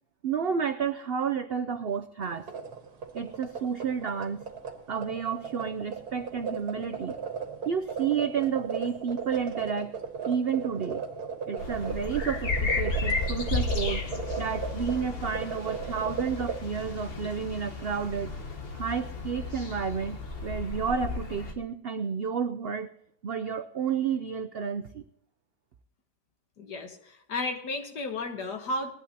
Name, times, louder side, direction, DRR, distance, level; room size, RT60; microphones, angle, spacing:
voice 1, 0.2-2.5 3.1-4.5 4.9-7.2 7.7-10.0 10.3-11.0 11.5-14.1 14.4-18.3 18.7-22.9 23.2-25.0, right 7 dB, 85° right, 8 dB, 0.5 m, -31 dB
sound 1, 2.3-16.6, right 6 dB, 70° right, 1.9 m, -36 dB
sound 2, 11.6-21.5, left 3 dB, 40° left, 1.3 m, -33 dB
voice 2, 26.6-28.9, left 2 dB, 80° left, 5 dB, 1.8 m, -33 dB
19.5 x 11.5 x 2.8 m, 0.71 s
omnidirectional pair, 1.7 m